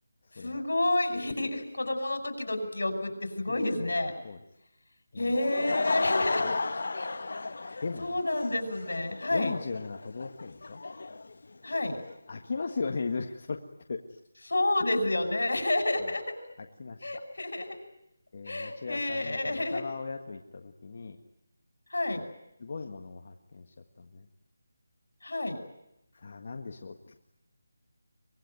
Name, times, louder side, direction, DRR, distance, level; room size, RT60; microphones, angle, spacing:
voice 1, 0.4-4.1 5.2-6.6 6.9-7.1 7.4-7.5 8.0-9.5 11.6-12.0 14.5-16.2 17.0-17.8 18.4-19.8 21.9-22.2 25.2-25.6, left 2 dB, 85° left, 8 dB, 6.0 m, -29 dB
voice 2, 3.5-3.9 4.2-4.4 5.1-5.3 6.4-6.6 7.8-8.2 9.3-10.8 12.3-14.2 15.9-16.1 16.6-17.2 18.3-21.2 22.6-23.7 24.0-24.2 26.2-27.2, left 4 dB, 45° left, 4 dB, 1.7 m, -38 dB
Laughter / Crowd, 5.2-12.1, left 3 dB, 65° left, 1.4 m, -34 dB
24.5 x 21.0 x 9.2 m, 0.87 s
figure-of-eight pair, 170°, 0 cm